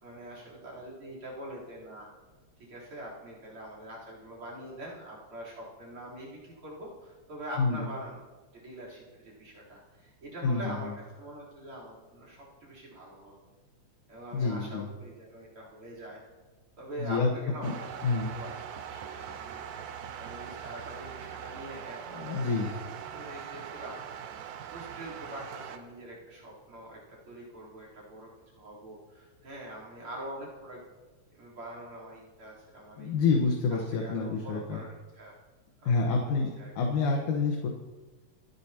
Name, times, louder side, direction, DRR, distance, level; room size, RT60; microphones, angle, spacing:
voice 1, 0.0-2.1 2.7-8.2 8.5-13.3 14.1-16.2 16.8-18.5 18.8-24.0 24.7-30.8 31.3-33.2 33.9-35.4 35.8-36.7, right 1 dB, 45° right, -5 dB, 4.5 m, -44 dB
voice 2, 10.4-10.9 14.3-14.9 17.0-17.3 17.6-17.7 18.0-18.4 22.1-22.7 33.0-34.8 35.8-37.7, left 4 dB, 85° left, 0 dB, 2.7 m, -28 dB
sound 1, 17.6-25.8, right 8 dB, 90° right, 2.3 m, -42 dB
29.0 x 10.5 x 2.9 m, 1.3 s
omnidirectional pair, 3.4 m